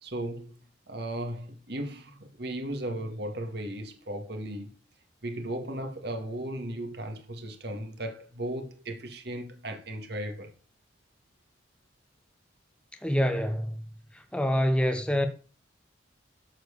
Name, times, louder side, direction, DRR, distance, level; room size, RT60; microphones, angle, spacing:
voice 1, 0.0-0.6 0.9-4.7 5.2-10.5, right 1 dB, 60° right, 2.1 m, -36 dB
voice 2, 13.0-13.8 14.3-15.3, equal, 5° left, 0.9 m, -25 dB
13.0 x 4.6 x 6.8 m
head